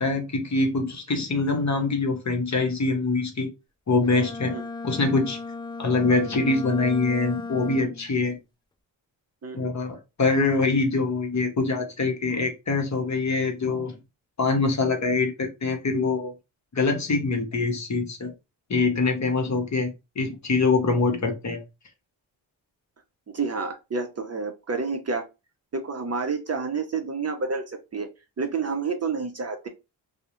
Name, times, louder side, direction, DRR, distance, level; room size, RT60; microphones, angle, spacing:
voice 1, 0.0-3.5 3.9-4.5 4.8-5.4 5.8-8.4 9.5-14.0 14.4-16.3 16.7-18.3 18.7-21.6, left 3 dB, 35° left, 0.8 m, -24 dB
Bowed string instrument, 4.0-8.1, left 4 dB, 10° left, 0.3 m, -36 dB
voice 2, 9.4-9.7 23.3-25.3 25.7-28.1 28.4-29.7, right 4 dB, 30° right, 0.6 m, -29 dB
2.3 x 2.0 x 2.9 m
supercardioid pair, 45°, 49 cm